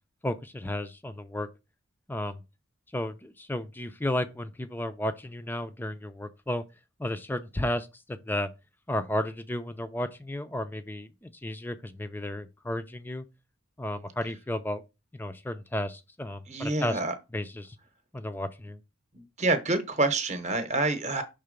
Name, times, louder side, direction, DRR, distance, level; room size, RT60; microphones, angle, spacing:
voice 1, 0.2-1.5 2.1-2.4 2.9-6.6 7.0-8.5 8.9-13.2 13.8-14.8 15.1-17.0 17.3-17.8 18.1-18.8, left 1 dB, 10° left, 0.4 m, -33 dB
voice 2, 16.5-17.1 19.4-21.2, right 2 dB, 30° right, 0.9 m, -27 dB
5.7 x 3.7 x 5.1 m
head